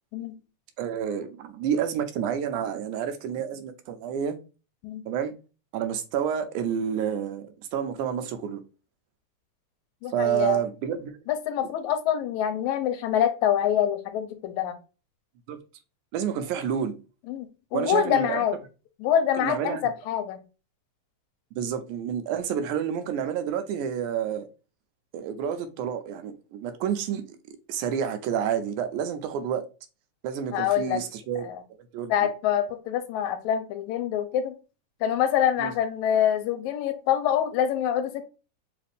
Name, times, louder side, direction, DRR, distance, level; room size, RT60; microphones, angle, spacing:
voice 1, 0.8-4.4 5.1-5.3 5.7-8.6 10.1-11.2 15.5-15.6 16.1-17.0 17.7-18.4 19.4-19.9 21.5-24.5 25.1-27.4 27.7-29.6 30.2-31.5 31.9-32.1 35.6-35.7, right 8 dB, 85° right, 2.1 m, -29 dB
voice 2, 10.0-10.6 11.3-14.8 17.3-18.6 19.0-20.4 30.5-31.0 31.4-31.6 32.1-34.6 35.0-38.2, left 10 dB, 80° left, 1.9 m, -25 dB
4.9 x 2.5 x 3.3 m
omnidirectional pair, 3.5 m